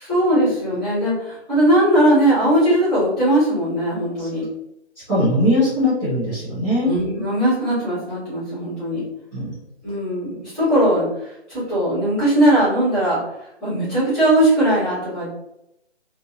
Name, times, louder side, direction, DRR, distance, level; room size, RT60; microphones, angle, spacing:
voice 1, 0.0-4.5 6.8-9.0 9.8-11.1 11.5-13.2 13.6-15.4, right 1 dB, ahead, -10 dB, 1.4 m, -19 dB
voice 2, 5.1-6.9 9.3-9.5, left 1 dB, 15° right, -14 dB, 0.9 m, -20 dB
3.3 x 2.7 x 2.8 m, 0.81 s
figure-of-eight pair, 155°, 35 cm